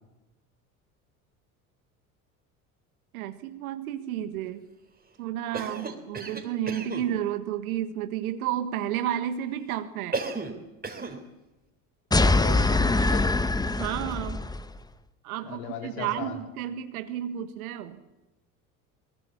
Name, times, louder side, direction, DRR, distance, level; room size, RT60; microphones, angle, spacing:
voice 1, 3.1-4.6 5.2-10.2 13.8-14.4 15.2-18.0, right 11 dB, 75° right, 9 dB, 1.6 m, -32 dB
Cough, 5.5-7.1 10.1-10.6 10.8-11.2, right 4 dB, 20° right, 3.8 m, -33 dB
sound 1, 12.1-14.7, left 2 dB, 10° left, 1.1 m, -23 dB
voice 2, 12.2-13.3 15.4-16.4, left 6 dB, 70° left, 4 dB, 4.0 m, -36 dB
22.5 x 20.5 x 8.5 m, 1.0 s
hypercardioid pair, 70°, 43 cm